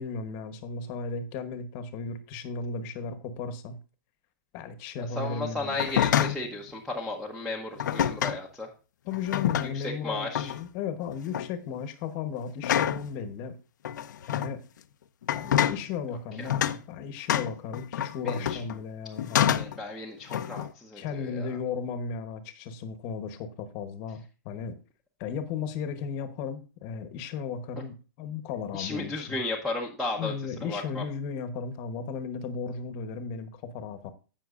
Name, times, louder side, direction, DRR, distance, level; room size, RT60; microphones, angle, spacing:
voice 1, 0.0-3.8 4.5-5.8 9.1-13.5 14.3-14.6 15.3-19.6 20.9-24.8 25.2-29.4 30.2-34.1, left 5 dB, 30° left, 1.1 m, -35 dB
voice 2, 5.2-8.7 9.7-10.5 16.4-16.5 18.2-18.6 19.5-21.5 28.7-30.3 30.6-31.0, left 2 dB, ahead, 0.8 m, -34 dB
sound 1, 5.7-6.5 7.8-8.4 9.1-9.9 10.3-10.7 11.1-11.5 12.6-13.1 13.8-14.5 15.2-15.8 16.5-16.8 17.3-18.8 19.2-19.8 20.3-20.7, left 10 dB, 65° left, 0.7 m, -27 dB
16.5 x 6.0 x 2.5 m
hypercardioid pair, 165°, 11 cm